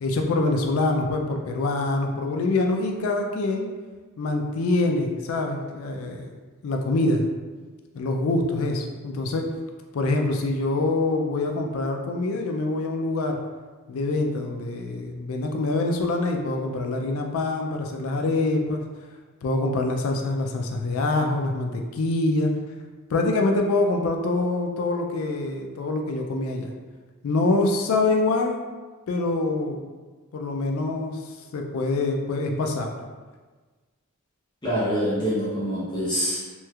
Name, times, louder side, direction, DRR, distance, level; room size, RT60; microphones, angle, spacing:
voice 1, 0.0-3.7 4.2-6.2 6.6-7.2 7.9-9.4 9.9-13.4 13.9-18.8 19.4-22.5 23.1-26.7 27.2-28.6 29.1-29.8 30.3-31.2 31.5-32.9, left 2 dB, 75° left, 2 dB, 0.4 m, -25 dB
voice 2, 34.6-36.4, equal, 20° left, -9 dB, 0.7 m, -25 dB
3.1 x 3.0 x 2.3 m, 1.3 s
head